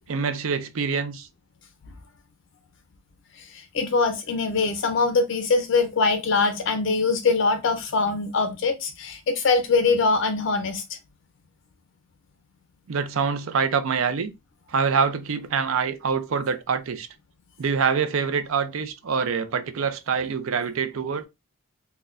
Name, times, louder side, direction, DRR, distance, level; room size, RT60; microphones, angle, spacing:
voice 1, 0.1-1.3 12.9-14.3 14.7-17.1 17.6-21.2, right 6 dB, 70° right, 0.5 m, -25 dB
voice 2, 3.4-10.8, left 4 dB, 55° left, 0.4 m, -23 dB
4.2 x 2.2 x 2.4 m
head